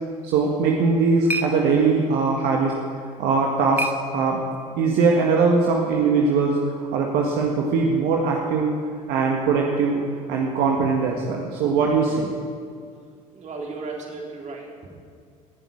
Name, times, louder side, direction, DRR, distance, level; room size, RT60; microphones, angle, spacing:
voice 1, 0.2-2.7 3.2-4.4 4.8-8.7 9.1-10.0 10.3-12.3, right 4 dB, 65° right, -1 dB, 1.8 m, -21 dB
sound 1, 0.5-4.8, right 2 dB, 10° right, 1.1 m, -35 dB
voice 2, 13.3-14.9, right 3 dB, 40° right, 0 dB, 3.8 m, -35 dB
18.5 x 7.4 x 8.6 m, 2.2 s
hypercardioid pair, 75°, 18 cm